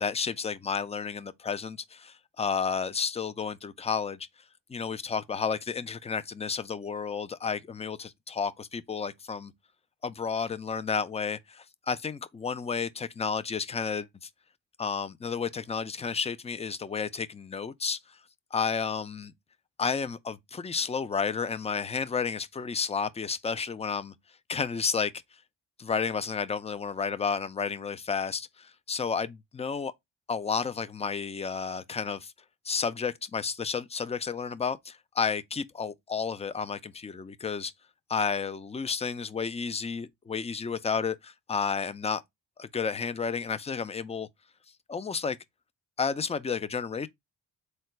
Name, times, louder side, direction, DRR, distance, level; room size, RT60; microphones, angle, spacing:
voice 1, 0.0-4.3 4.7-9.5 10.0-14.3 14.8-18.2 18.5-19.3 19.8-24.1 24.5-25.1 25.8-29.9 30.3-32.3 32.7-37.7 38.1-42.2 42.6-44.3 44.9-45.4 46.0-47.1, left 5 dB, 15° left, 0.3 m, -31 dB
3.8 x 2.2 x 4.3 m
cardioid pair, 75°, 43 cm